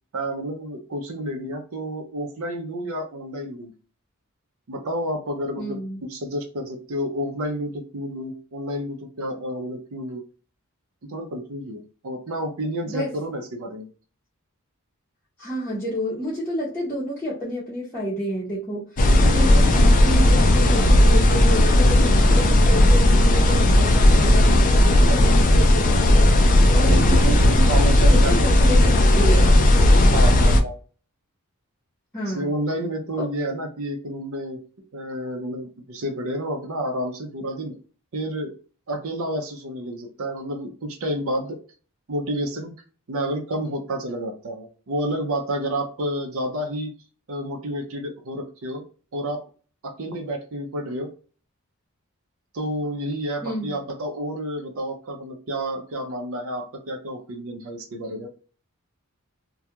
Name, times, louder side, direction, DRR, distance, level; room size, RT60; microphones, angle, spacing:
voice 1, 0.1-3.7 4.7-10.2 11.0-13.9 19.2-19.5 22.5-22.7 26.8-28.5 30.1-30.8 32.3-34.6 34.9-37.8 38.1-38.5 38.9-41.6 42.1-42.8 43.1-46.9 47.3-48.8 49.1-49.4 49.8-51.1 52.5-58.3, right 1 dB, 70° right, 2 dB, 0.6 m, -30 dB
voice 2, 5.6-6.0 12.9-13.1 15.4-29.6 32.1-32.5 33.2-33.3 53.4-53.8, equal, 10° left, -9 dB, 0.8 m, -30 dB
sound 1, 19.0-30.6, left 1 dB, 40° left, 0.4 m, -15 dB
2.3 x 2.2 x 2.8 m, 0.37 s
head